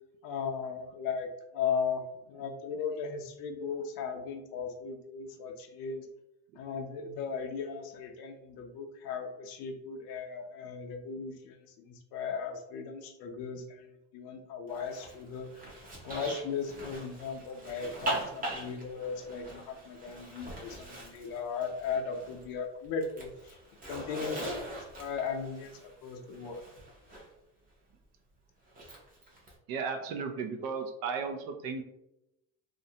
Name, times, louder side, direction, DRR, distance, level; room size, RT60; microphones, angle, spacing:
voice 1, 0.2-2.0 2.3-6.1 6.6-15.7 16.0-23.6 23.9-24.6 25.0-26.6, left 6 dB, 70° left, 5 dB, 0.6 m, -37 dB
Zipper (clothing), 14.7-22.5 22.8-27.3 28.7-29.5, right 1 dB, 25° right, 0.7 m, -41 dB
voice 2, 29.7-31.8, right 5 dB, 65° right, 5 dB, 0.5 m, -35 dB
2.5 x 2.1 x 2.7 m, 0.85 s
cardioid pair, 125°, 37 cm